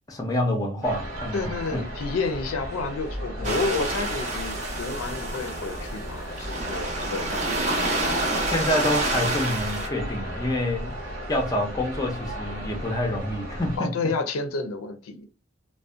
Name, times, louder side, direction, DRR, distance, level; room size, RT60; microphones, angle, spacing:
voice 1, 0.1-1.9 3.4-3.6 8.4-11.0 11.3-14.1, left 1 dB, 15° left, 0.4 m, -27 dB
sound 1, 0.8-13.8, equal, 70° right, 0.8 m, -35 dB
voice 2, 1.3-7.9 13.8-15.3, left 3 dB, 85° left, 0.5 m, -30 dB
sound 2, 3.4-9.9, right 2 dB, 35° right, 0.5 m, -28 dB
2.5 x 2.1 x 2.3 m
head